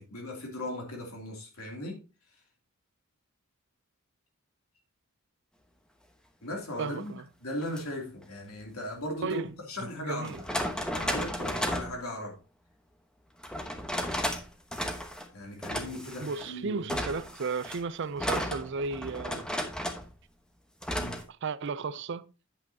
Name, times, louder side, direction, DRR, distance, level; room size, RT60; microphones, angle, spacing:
voice 1, 0.0-2.0 6.4-10.5 10.9-12.4 15.3-16.8 21.0-21.2, left 1 dB, 90° left, 2.8 m, -38 dB
voice 2, 6.8-7.2 9.2-9.5 9.8-10.4 15.8-19.5 21.4-22.3, right 4 dB, 55° right, 0.5 m, -34 dB
sound 1, 7.6-7.8 9.4-9.5 10.2-12.0 13.4-14.4 14.7-15.3 15.6-16.5 16.9-20.1 20.8-21.2, equal, 5° left, 1.0 m, -33 dB
8.9 x 8.3 x 2.8 m
head